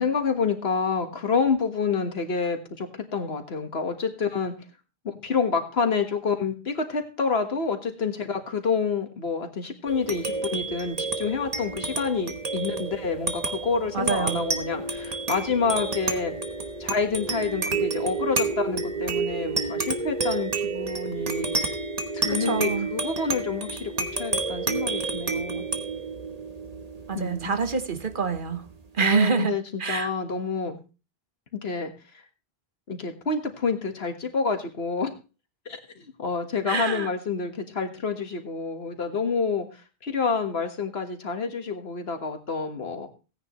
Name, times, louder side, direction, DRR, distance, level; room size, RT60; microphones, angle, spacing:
voice 1, 0.0-4.5 5.2-16.3 16.8-21.5 22.1-25.7 27.1-27.5 29.0-30.8 31.6-31.9 32.9-35.1 35.7-39.7 40.0-43.1, left 5 dB, 75° left, 5 dB, 1.8 m, -28 dB
sound 1, 9.9-28.7, right 3 dB, 40° right, 1.2 m, -30 dB
voice 2, 13.9-14.4 22.3-22.9 27.1-28.6 28.9-30.1 36.7-37.1, right 5 dB, 55° right, 9 dB, 1.3 m, -26 dB
17.0 x 9.7 x 3.1 m, 0.32 s
omnidirectional pair, 1.1 m